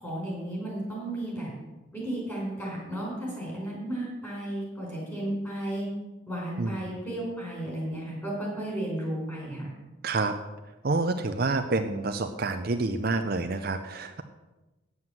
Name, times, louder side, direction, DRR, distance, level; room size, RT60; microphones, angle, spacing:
voice 1, 0.0-1.5 1.9-5.9 6.3-9.8, right 1 dB, 10° left, -4 dB, 5.0 m, -33 dB
voice 2, 6.6-7.0 10.0-10.3 10.8-14.2, right 3 dB, 45° right, 7 dB, 0.6 m, -28 dB
9.4 x 7.9 x 7.3 m, 1.1 s
head